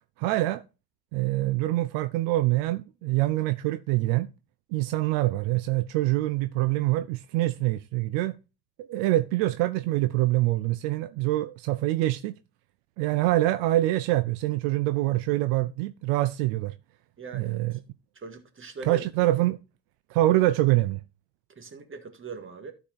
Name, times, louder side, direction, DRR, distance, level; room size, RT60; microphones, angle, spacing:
voice 1, 0.2-0.6 1.1-4.3 4.7-8.4 8.8-12.3 13.0-16.7 17.3-17.7 18.8-19.6 20.1-21.0, right 17 dB, 70° right, 0.7 m, -25 dB
voice 2, 17.2-17.8 18.2-19.0 21.6-22.7, right 5 dB, 25° right, 1.9 m, -41 dB
12.0 x 5.0 x 4.1 m
supercardioid pair, 90°, 46 cm